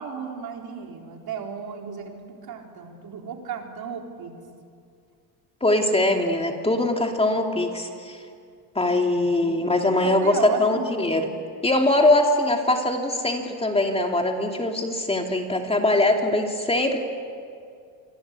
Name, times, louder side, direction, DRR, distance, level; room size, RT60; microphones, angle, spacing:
voice 1, 0.0-4.3 9.4-10.9, right 7 dB, 55° right, 2 dB, 4.1 m, -35 dB
voice 2, 5.6-8.2 8.7-11.3 11.6-17.0, left 2 dB, 15° left, 2 dB, 2.7 m, -22 dB
26.5 x 25.0 x 8.3 m, 2.3 s
cardioid pair, 110°, 44 cm